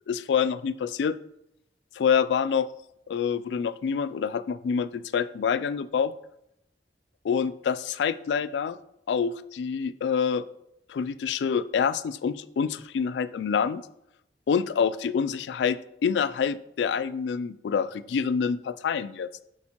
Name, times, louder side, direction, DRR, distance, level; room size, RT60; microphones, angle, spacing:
voice 1, 0.1-1.2 2.0-2.7 3.1-6.1 7.3-8.8 9.1-10.4 10.9-13.8 14.5-19.4, left 6 dB, 70° left, 15 dB, 0.3 m, -27 dB
8.5 x 4.4 x 2.9 m, 0.80 s
head